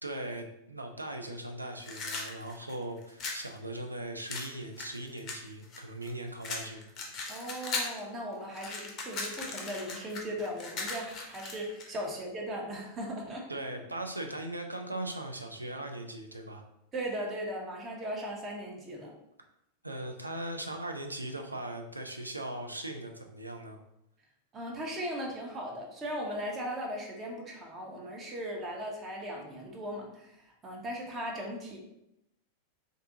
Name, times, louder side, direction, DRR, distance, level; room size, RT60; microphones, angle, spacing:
voice 1, 0.0-6.9 13.5-16.6 19.8-23.8, right 1 dB, 85° right, 4 dB, 0.3 m, -39 dB
sound 1, 1.8-3.5 4.3-6.1 6.4-8.0 8.3-11.9, left 3 dB, 35° left, 0.5 m, -38 dB
voice 2, 7.3-13.4 16.9-19.1 24.5-31.8, equal, 25° right, -1 dB, 0.5 m, -38 dB
2.5 x 2.3 x 2.6 m, 0.83 s
figure-of-eight pair, 90°, 0 cm